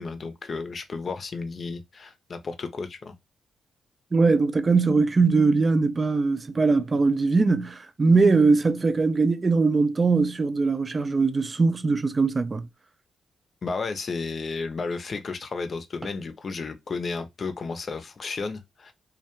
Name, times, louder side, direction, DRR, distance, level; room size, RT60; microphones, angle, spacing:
voice 1, 0.0-3.1 13.6-18.9, left 4 dB, 50° left, 0.5 m, -33 dB
voice 2, 4.1-12.7, right 4 dB, 40° right, 0.4 m, -21 dB
2.2 x 2.1 x 2.9 m
cardioid pair, 60°, 0 cm